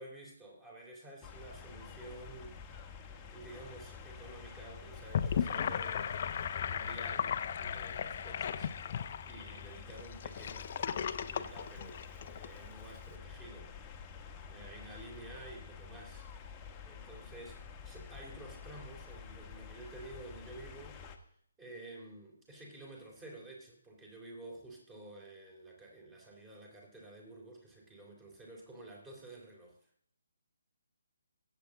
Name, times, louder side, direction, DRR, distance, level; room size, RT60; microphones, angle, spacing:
voice 1, 0.0-2.6 2.8-3.0 3.3-6.1 6.5-13.7 14.5-16.6 16.9-17.6 17.9-21.2 21.6-29.8, right 2 dB, 15° right, 0 dB, 3.5 m, -51 dB
sound 1, 1.2-21.2, left 6 dB, 15° left, 1.4 m, -49 dB
Gurgling / Sink (filling or washing), 4.9-12.5, left 8 dB, 40° left, 0.8 m, -36 dB
21.5 x 8.5 x 3.8 m, 0.65 s
figure-of-eight pair, 145°, 0 cm